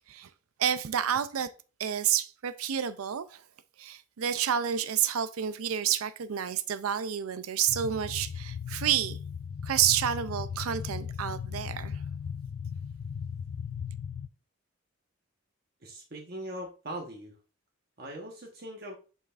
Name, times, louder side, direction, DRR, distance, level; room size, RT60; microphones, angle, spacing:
voice 1, 0.6-1.5 1.8-3.4 3.8-9.2 9.6-12.0, right 9 dB, 85° right, 0.5 m, -29 dB
sound 1, 7.7-14.3, left 7 dB, 60° left, 0.3 m, -37 dB
voice 2, 15.8-17.4 18.0-18.9, right 1 dB, 45° right, 1.2 m, -40 dB
7.4 x 5.6 x 2.4 m
head